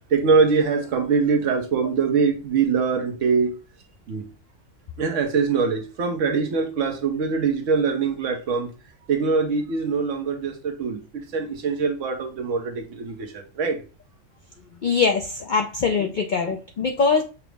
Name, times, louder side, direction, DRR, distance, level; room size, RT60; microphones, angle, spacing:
voice 1, 0.1-3.6 4.1-4.3 5.0-8.7 9.1-13.8, right 5 dB, 70° right, 1.2 m, -23 dB
voice 2, 14.8-17.2, left 5 dB, 65° left, 0.4 m, -22 dB
5.9 x 2.0 x 3.2 m
omnidirectional pair, 1.4 m